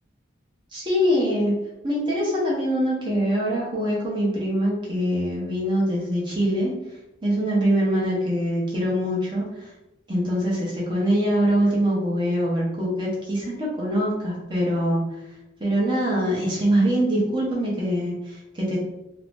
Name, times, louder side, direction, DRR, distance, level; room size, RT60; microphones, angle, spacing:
voice 1, 0.7-1.5 1.8-6.7 7.2-9.7 10.1-15.0 15.6-18.8, equal, 25° right, -5 dB, 0.8 m, -23 dB
2.7 x 2.0 x 3.2 m, 0.94 s
head